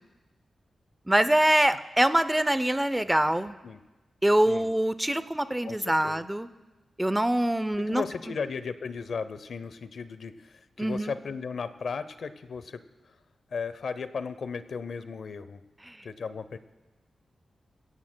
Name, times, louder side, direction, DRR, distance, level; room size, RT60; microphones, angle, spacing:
voice 1, 1.1-3.5 4.2-6.5 7.0-8.3 10.8-11.1 15.9-16.0, right 1 dB, 10° right, 13 dB, 0.4 m, -24 dB
voice 2, 5.6-6.2 7.8-12.8 13.5-15.6 16.0-16.6, left 5 dB, 60° left, 13 dB, 0.6 m, -36 dB
22.0 x 16.5 x 2.2 m, 1.1 s
wide cardioid pair, 160°, 0 cm